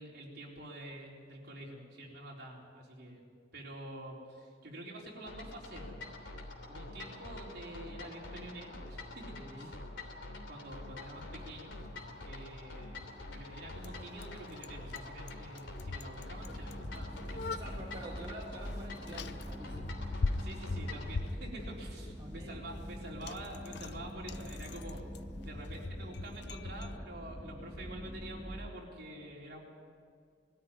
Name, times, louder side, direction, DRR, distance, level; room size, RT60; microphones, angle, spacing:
voice 1, 0.0-3.2 3.5-6.0 6.7-9.7 10.5-11.8 12.1-13.1 13.3-17.8 20.4-25.0 25.4-29.6, right 1 dB, 55° right, -2 dB, 4.1 m, -47 dB
sound 1, 5.3-21.1, left 2 dB, 80° left, 3.2 m, -46 dB
voice 2, 9.3-9.7 17.5-20.0 22.2-22.8, right 1 dB, 25° right, -4 dB, 2.1 m, -47 dB
Bicycle, 10.7-27.0, left 3 dB, 60° left, 0.5 m, -42 dB
sound 2, 16.4-28.7, equal, 5° right, 0.9 m, -45 dB
20.5 x 13.5 x 9.6 m, 2.1 s
head